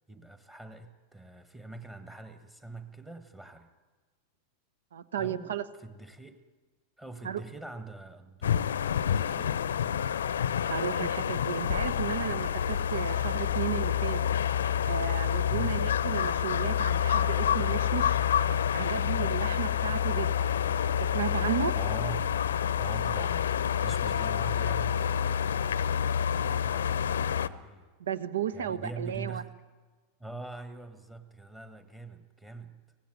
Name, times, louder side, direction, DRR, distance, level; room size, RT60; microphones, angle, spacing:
voice 1, 0.1-3.7 5.2-6.4 7.0-9.7 15.5-15.8 21.7-22.3 22.7-25.6 26.1-27.8 28.5-29.5 30.2-32.7, right 2 dB, 10° right, 9 dB, 1.5 m, -43 dB
voice 2, 4.9-5.7 7.2-7.4 10.7-14.2 14.9-18.2 18.7-20.6 21.0-21.8 28.0-29.4, right 9 dB, 65° right, 16 dB, 1.1 m, -34 dB
sound 1, 8.4-27.5, left 9 dB, 65° left, 0.7 m, -28 dB
24.0 x 17.5 x 9.4 m, 1.4 s
figure-of-eight pair, 90°, 0 cm